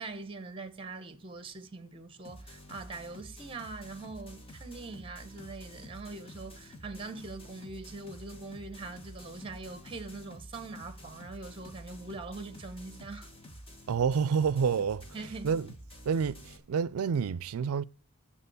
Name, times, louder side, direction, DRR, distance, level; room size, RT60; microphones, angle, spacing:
voice 1, 0.0-13.3 15.1-15.5, right 3 dB, 25° right, 0.9 m, -43 dB
sound 1, 2.2-16.6, equal, 25° left, 1.4 m, -49 dB
voice 2, 13.9-15.0 15.4-15.7 16.1-17.8, right 6 dB, 85° right, 0.4 m, -28 dB
7.1 x 6.8 x 6.9 m
head